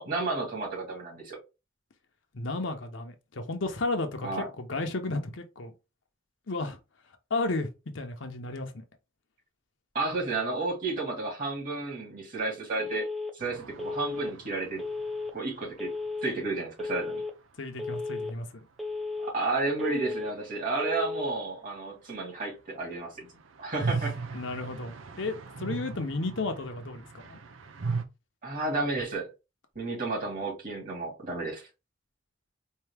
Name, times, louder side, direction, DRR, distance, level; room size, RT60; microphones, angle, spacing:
voice 1, 0.0-1.4 4.2-4.5 9.9-13.1 13.3-14.8 15.3-15.9 16.2-17.2 19.2-23.3 23.6-24.1 28.4-29.3 29.7-31.7, right 3 dB, 45° right, 2.4 m, -32 dB
voice 2, 2.3-5.7 6.5-6.8 7.3-7.7 7.9-8.8 17.6-18.5 24.3-27.4, left 2 dB, 70° left, 0.8 m, -33 dB
Telephone, 12.8-13.3 13.8-14.3 14.8-15.3 15.8-16.3 16.8-17.3 17.8-18.3 18.8-19.3 19.8-20.3 20.8-21.3, left 3 dB, ahead, 0.5 m, -34 dB
sound 1, 13.4-17.2 17.5-17.6 17.7-17.8 22.9-28.1, right 4 dB, 85° right, 0.6 m, -38 dB
4.5 x 2.7 x 3.4 m
head